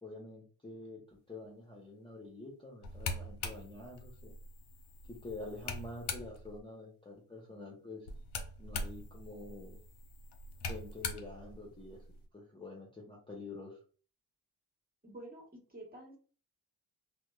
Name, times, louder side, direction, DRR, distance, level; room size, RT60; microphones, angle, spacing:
voice 1, 0.0-4.3 5.1-8.1 8.6-9.8 10.7-13.8, left 2 dB, 10° left, -2 dB, 0.8 m, -47 dB
sound 1, 2.8-6.6 8.1-12.3, left 3 dB, 55° left, 0.7 m, -43 dB
voice 2, 15.0-16.2, right 1 dB, 20° right, 0 dB, 1.2 m, -49 dB
2.7 x 2.1 x 2.3 m, 0.39 s
hypercardioid pair, 40°, 49 cm